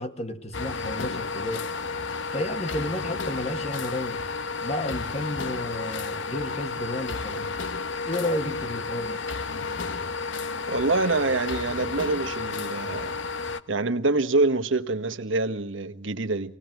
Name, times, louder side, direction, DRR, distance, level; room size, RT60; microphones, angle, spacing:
voice 1, 0.0-1.7 2.3-4.2 4.6-7.5 8.1-9.2, left 1 dB, 30° left, 1.8 m, -32 dB
sound 1, 0.5-13.6, left 4 dB, 70° left, 1.0 m, -32 dB
voice 2, 10.7-13.2 13.7-16.6, right 3 dB, 75° right, 1.4 m, -26 dB
26.0 x 18.5 x 9.3 m
head